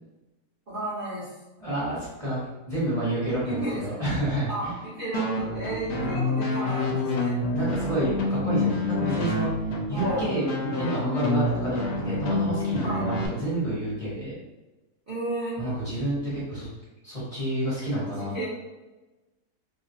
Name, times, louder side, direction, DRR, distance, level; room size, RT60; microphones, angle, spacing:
voice 1, 0.7-1.3 3.4-3.8 4.5-7.4 9.9-10.3 12.8-13.1 15.1-15.6 18.2-18.4, right 1 dB, 40° right, -10 dB, 1.0 m, -32 dB
voice 2, 1.6-2.4 2.7-4.7 7.5-9.5 9.9-14.3 15.6-16.7 17.0-18.3, right 1 dB, 25° left, -11 dB, 1.3 m, -29 dB
sound 1, 5.1-13.3, left 2 dB, 75° left, 1.2 m, -27 dB
3.0 x 2.6 x 2.7 m, 1.1 s
omnidirectional pair, 1.8 m